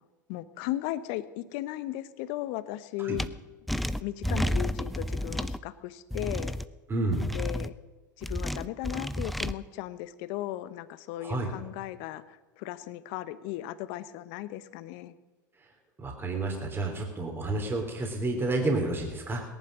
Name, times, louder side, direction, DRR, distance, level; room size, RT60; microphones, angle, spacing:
voice 1, 0.3-3.3 4.0-6.5 7.3-7.7 8.2-15.1, left 14 dB, 55° left, 14 dB, 1.0 m, -36 dB
sound 1, 3.2-3.3 3.7-5.6 6.1-6.6 7.1-7.7 8.2-9.5, equal, ahead, 0.6 m, -31 dB
voice 2, 6.9-7.3 11.2-11.5 16.0-19.4, right 2 dB, 20° right, 2 dB, 3.5 m, -30 dB
18.5 x 11.0 x 6.2 m, 1.2 s
hypercardioid pair, 85°, 10 cm